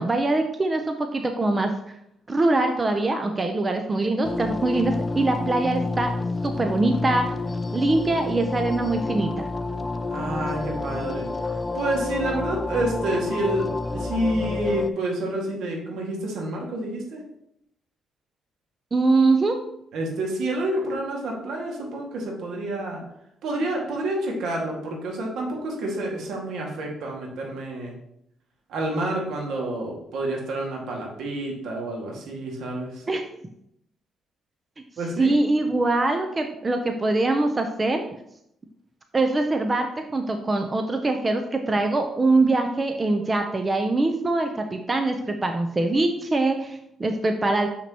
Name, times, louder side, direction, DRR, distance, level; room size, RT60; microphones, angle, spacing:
voice 1, 0.0-2.0 2.3-6.1 6.4-7.3 7.7-9.4 18.9-19.6 33.1-33.3 35.2-38.0 39.1-47.7, right 2 dB, 25° right, 5 dB, 0.7 m, -23 dB
sound 1, 4.2-14.9, left 3 dB, 25° left, 0.4 m, -29 dB
voice 2, 10.1-11.3 11.7-17.2 19.9-23.0 23.4-27.9 28.7-33.0 35.0-35.4, right 1 dB, 75° right, 0 dB, 1.9 m, -28 dB
6.9 x 6.0 x 3.0 m, 0.75 s
cardioid pair, 90°, 0 cm